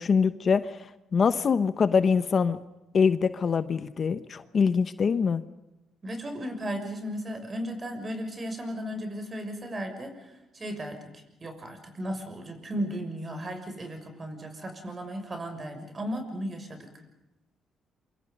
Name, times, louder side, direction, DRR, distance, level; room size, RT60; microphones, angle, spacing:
voice 1, 0.0-2.6 2.9-5.4, left 5 dB, 45° left, 12 dB, 1.1 m, -24 dB
voice 2, 6.0-16.9, equal, 30° right, 6 dB, 6.5 m, -35 dB
27.5 x 25.0 x 5.4 m, 0.97 s
cardioid pair, 90°, 0 cm